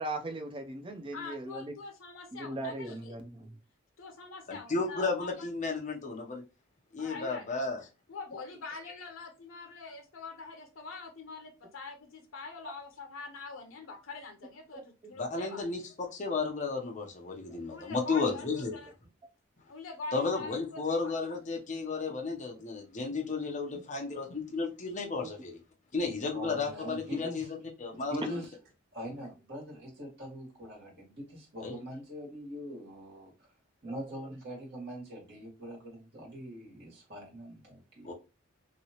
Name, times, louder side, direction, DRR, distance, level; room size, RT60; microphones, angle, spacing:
voice 1, 0.0-1.7 2.3-3.6 12.6-12.7 14.7-14.8 22.5-22.6 25.2-25.3 33.8-34.0, right 2 dB, 25° right, 0.5 m, -39 dB
voice 2, 1.1-3.2 4.0-5.5 7.0-7.6 8.1-15.7 17.7-18.9 19.7-21.3, left 4 dB, 85° left, 0.6 m, -44 dB
voice 3, 4.5-6.4 6.9-7.8 15.1-18.8 20.1-25.6 25.9-28.4 31.6-31.8 38.0-38.1, left 4 dB, 40° left, 0.7 m, -33 dB
voice 4, 26.3-27.5 27.9-28.5 28.9-33.5 33.8-38.1, equal, 60° right, 1.8 m, -42 dB
3.0 x 2.9 x 2.8 m
head